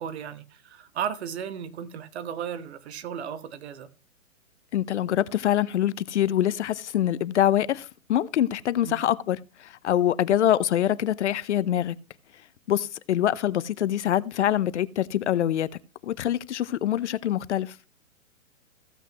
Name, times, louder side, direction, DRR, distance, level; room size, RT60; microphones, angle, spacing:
voice 1, 0.0-3.9 8.8-9.0, right 8 dB, 50° right, 1.3 m, -35 dB
voice 2, 4.7-11.9 12.7-15.7 16.0-17.7, left 11 dB, 55° left, 0.7 m, -25 dB
15.5 x 8.0 x 3.0 m
hypercardioid pair, 145°, 41 cm